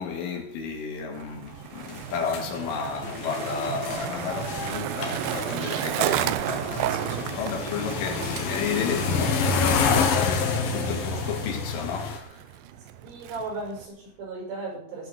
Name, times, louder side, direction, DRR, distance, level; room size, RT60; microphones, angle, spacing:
voice 1, 0.0-12.4, left 6 dB, 75° left, 4.6 m, -33 dB
Skateboard, 1.1-13.9, right 14 dB, 90° right, 2.4 m, -33 dB
sound 1, 1.9-12.2, left 5 dB, 60° left, 2.8 m, -28 dB
voice 2, 13.0-15.1, right 3 dB, 70° right, 8.7 m, -36 dB
17.0 x 6.0 x 7.7 m
omnidirectional pair, 5.7 m